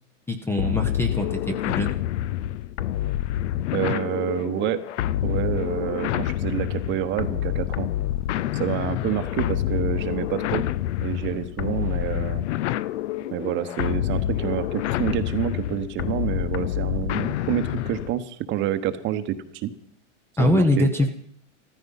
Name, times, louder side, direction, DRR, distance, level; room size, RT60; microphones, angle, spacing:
voice 1, 0.3-1.9 20.4-21.1, left 1 dB, 5° left, 6 dB, 0.7 m, -23 dB
sound 1, 0.6-18.2, left 12 dB, 65° left, 0.7 m, -27 dB
voice 2, 3.7-4.8 5.2-7.9 8.5-10.7 11.0-12.4 13.3-19.7 20.4-20.9, right 11 dB, 30° right, 11 dB, 1.1 m, -28 dB
14.0 x 14.0 x 5.5 m, 0.70 s
supercardioid pair, 145°, 37 cm